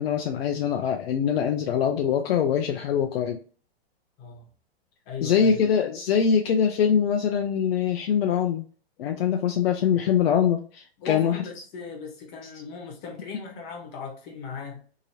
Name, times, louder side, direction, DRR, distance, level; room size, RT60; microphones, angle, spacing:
voice 1, 0.0-3.4 5.2-8.6 9.0-11.4, left 7 dB, 70° left, 0.5 m, -23 dB
voice 2, 4.2-4.5 5.1-5.6 11.0-14.8, left 5 dB, 40° left, 1.1 m, -37 dB
2.9 x 2.8 x 2.7 m
hypercardioid pair, 135°, 31 cm